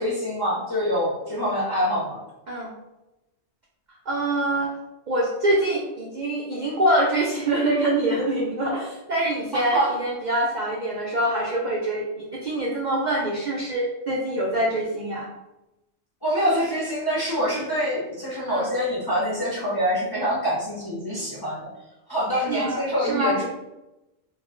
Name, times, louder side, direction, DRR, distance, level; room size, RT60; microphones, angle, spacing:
voice 1, 0.0-2.2 9.5-9.9 16.2-21.7 22.1-23.4, equal, 30° left, -7 dB, 0.4 m, -25 dB
voice 2, 4.1-4.7 5.1-15.3 18.5-18.7 22.5-23.4, right 1 dB, 85° right, -3 dB, 0.4 m, -25 dB
2.3 x 2.1 x 3.6 m, 0.97 s
omnidirectional pair, 1.3 m